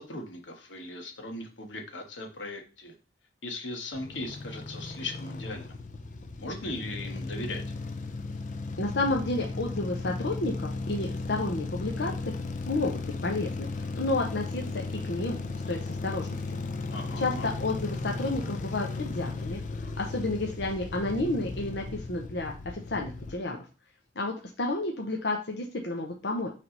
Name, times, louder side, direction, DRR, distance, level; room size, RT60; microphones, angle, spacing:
voice 1, 0.0-2.9 3.4-5.8 6.4-7.6 16.9-17.5, left 2 dB, 85° left, 3 dB, 1.5 m, -38 dB
sound 1, 3.9-23.4, left 3 dB, 45° left, 0.6 m, -36 dB
voice 2, 8.8-12.1 12.6-13.7 13.9-15.4 15.7-16.6 17.2-23.6 24.2-26.5, left 2 dB, 65° left, 1 dB, 0.9 m, -31 dB
5.4 x 3.5 x 5.4 m, 0.33 s
head